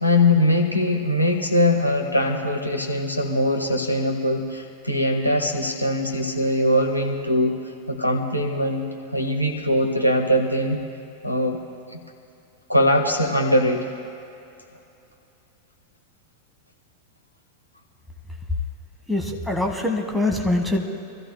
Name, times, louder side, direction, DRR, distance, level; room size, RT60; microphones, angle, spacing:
voice 1, 0.0-7.6 7.9-8.9 9.1-10.8 11.2-11.6 11.9-12.0 12.7-13.9, left 1 dB, 90° left, 1 dB, 1.5 m, -21 dB
voice 2, 19.1-20.9, left 2 dB, ahead, 2 dB, 1.5 m, -23 dB
27.0 x 15.0 x 2.2 m, 2.7 s
figure-of-eight pair, 90°, 0 cm